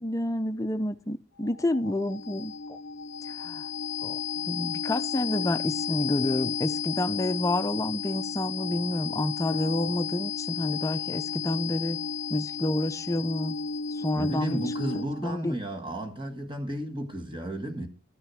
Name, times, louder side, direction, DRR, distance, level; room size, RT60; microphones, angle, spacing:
voice 1, 0.0-2.8 3.4-3.6 4.0-12.0 12.3-13.6 14.0-14.6 15.2-15.5, left 1 dB, 15° left, 0.6 m, -29 dB
sound 1, 1.4-15.3, left 6 dB, 70° left, 0.5 m, -33 dB
voice 2, 14.1-17.9, right 1 dB, 25° right, 1.6 m, -33 dB
13.5 x 6.2 x 6.2 m
head